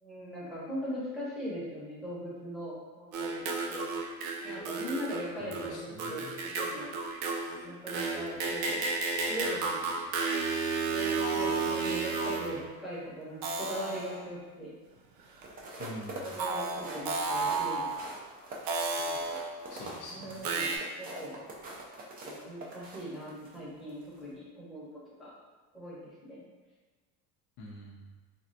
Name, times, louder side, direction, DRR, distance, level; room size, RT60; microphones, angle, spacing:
voice 1, 0.0-3.4 3.7-3.9 4.4-6.9 7.6-8.9 9.2-10.0 10.9-14.7 16.2-18.1 19.0-19.4 20.1-20.7 21.0-21.5 22.2-24.9 25.2-25.3 25.7-26.5, equal, ahead, -9 dB, 0.8 m, -40 dB
sound 1, 3.1-12.7 13.4-14.3 15.4-15.5 16.4-18.1 18.7-19.7 20.4-20.8, right 4 dB, 75° right, 0.6 m, -32 dB
voice 2, 5.4-6.4 15.8-16.2 19.7-20.5 27.6-28.0, left 1 dB, 50° left, -3 dB, 0.5 m, -45 dB
sound 2, 15.4-23.6 24.0-24.2, right 2 dB, 25° right, 0.4 m, -44 dB
3.3 x 2.3 x 2.6 m, 1.3 s
cardioid pair, 140°, 39 cm